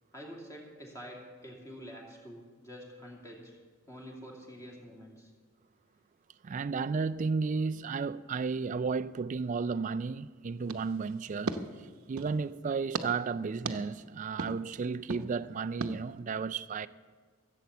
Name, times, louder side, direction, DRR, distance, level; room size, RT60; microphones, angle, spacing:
voice 1, 0.1-3.5 3.9-5.3, equal, 15° left, 2.5 m, -47 dB
voice 2, 6.4-16.9, right 4 dB, 35° right, 0.3 m, -33 dB
sound 1, 10.7-12.4 12.9-13.1 13.7-13.8 14.4-14.5 15.1-15.2 15.8-15.9, right 3 dB, 80° right, 0.8 m, -37 dB
16.0 x 8.1 x 7.1 m
head